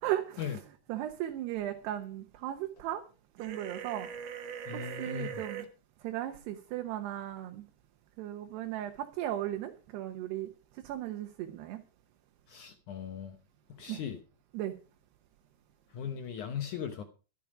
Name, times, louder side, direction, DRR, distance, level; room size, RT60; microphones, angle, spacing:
voice 1, 0.0-0.5 0.9-3.0 3.4-4.1 4.7-5.6 6.0-7.6 8.2-11.8 13.9-14.0 14.5-14.7, right 13 dB, 80° right, 3.1 m, -36 dB
sound 1, 3.4-5.7, right 8 dB, 60° right, 2.6 m, -41 dB
voice 2, 4.7-5.4 12.5-13.4 13.7-14.2 15.9-17.0, left 8 dB, 75° left, 1.8 m, -38 dB
12.5 x 12.0 x 5.0 m
omnidirectional pair, 4.8 m